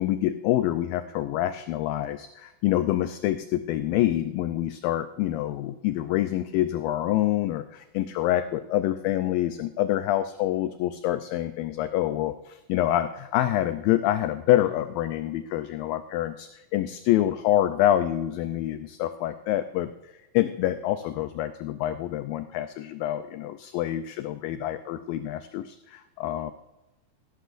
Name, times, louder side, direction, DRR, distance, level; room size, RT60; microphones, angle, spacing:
voice 1, 0.0-26.5, left 13 dB, 80° left, 10 dB, 2.1 m, -26 dB
17.0 x 14.0 x 2.5 m, 1.0 s
omnidirectional pair, 4.5 m